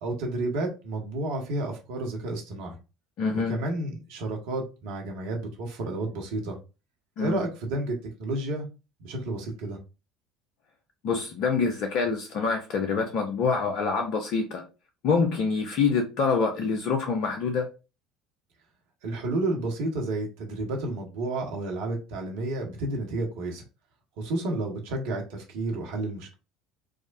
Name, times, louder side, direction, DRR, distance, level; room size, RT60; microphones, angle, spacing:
voice 1, 0.0-2.8 3.3-6.6 7.2-8.7 9.0-9.8 19.0-23.6 24.2-26.3, right 2 dB, 65° right, 1.1 m, -31 dB
voice 2, 3.2-3.6 7.2-7.4 11.0-14.6 15.0-17.7, left 5 dB, 55° left, 0.6 m, -26 dB
4.9 x 2.1 x 2.5 m
figure-of-eight pair, 65°, 0 cm